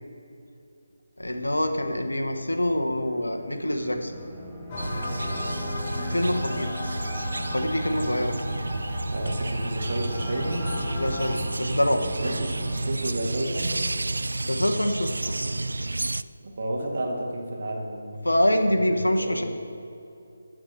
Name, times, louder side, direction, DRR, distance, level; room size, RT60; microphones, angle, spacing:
voice 1, 1.2-4.1 6.1-6.8 7.4-8.4 10.9-12.0 14.5-15.4 18.2-19.4, left 1 dB, 85° left, 5 dB, 1.2 m, -25 dB
sound 1, 2.6-12.8, equal, 10° right, 1.7 m, -40 dB
sound 2, 4.7-11.4, left 2 dB, 30° left, 1.3 m, -36 dB
sound 3, 4.8-16.2, right 2 dB, 70° right, 0.3 m, -31 dB
voice 2, 6.0-6.3 8.0-8.1 9.1-10.7 12.1-13.8 16.4-18.1 18.7-19.4, right 1 dB, 50° right, 0 dB, 2.2 m, -32 dB
15.0 x 5.0 x 6.6 m, 2.7 s
figure-of-eight pair, 150°, 0 cm